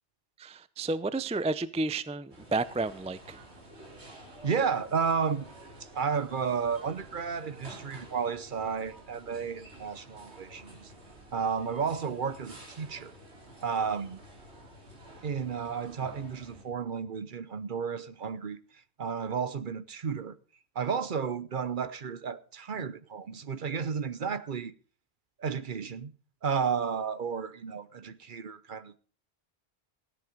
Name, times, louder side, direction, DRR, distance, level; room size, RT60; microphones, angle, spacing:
voice 1, 0.4-3.4, right 3 dB, 10° right, 0.4 m, -31 dB
Shop background Tesco Store, 2.3-16.6, right 1 dB, 80° right, 3.3 m, -50 dB
voice 2, 4.4-5.5 5.9-10.9 11.3-13.1 13.6-14.2 15.2-18.6 19.0-20.4 20.7-24.7 25.4-26.1 26.4-29.0, right 6 dB, 55° right, 0.9 m, -32 dB
15.5 x 10.0 x 5.2 m
omnidirectional pair, 1.1 m